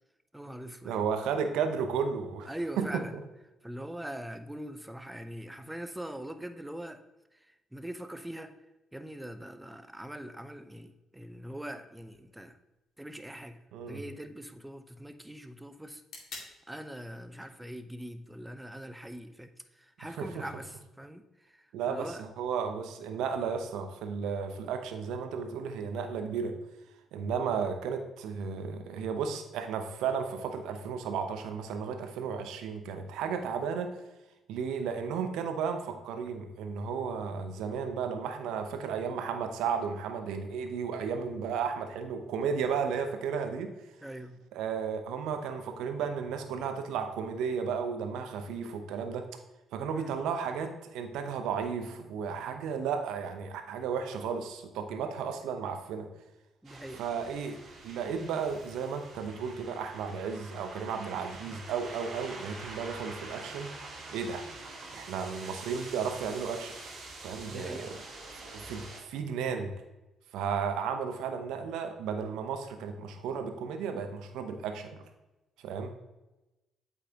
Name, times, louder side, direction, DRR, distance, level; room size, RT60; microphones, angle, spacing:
voice 1, 0.3-1.0 2.5-3.1 3.6-7.0 7.7-8.6 8.9-12.6 13.0-13.6 13.9-16.0 16.7-19.5 19.8-22.2 44.0-44.4 49.9-50.2 56.6-57.0 67.5-67.9, right 1 dB, 10° right, 9 dB, 0.7 m, -42 dB
voice 2, 0.8-2.9 13.7-14.0 20.2-20.3 21.7-26.5 27.1-33.9 34.5-43.7 44.5-49.3 49.7-56.1 56.9-57.6 57.8-63.7 64.1-64.4 64.9-66.7 67.2-67.9 68.5-69.7 70.3-75.0 75.6-75.9, right 6 dB, 75° right, 6 dB, 0.8 m, -34 dB
sound 1, 12.0-20.0, left 3 dB, 65° left, 2.1 m, -55 dB
sound 2, 56.6-69.0, right 3 dB, 60° right, 2.0 m, -46 dB
8.2 x 5.5 x 2.9 m, 1.0 s
hypercardioid pair, 50°, 0 cm